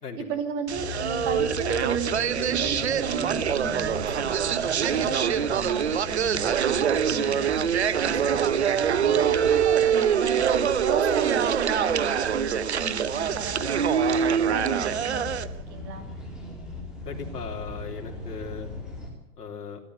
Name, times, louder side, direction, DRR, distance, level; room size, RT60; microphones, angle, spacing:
voice 1, 0.2-8.6 9.0-15.3 15.7-16.0, right 6 dB, 15° right, 7 dB, 2.2 m, -33 dB
sound 1, 0.7-19.1, left 2 dB, ahead, 2.6 m, -39 dB
sound 2, 0.7-15.4, right 8 dB, 45° right, 0.8 m, -24 dB
voice 2, 17.0-18.7 19.4-19.8, left 5 dB, 80° left, 1 dB, 3.7 m, -37 dB
26.5 x 13.0 x 8.0 m, 0.86 s
hypercardioid pair, 175°, 47 cm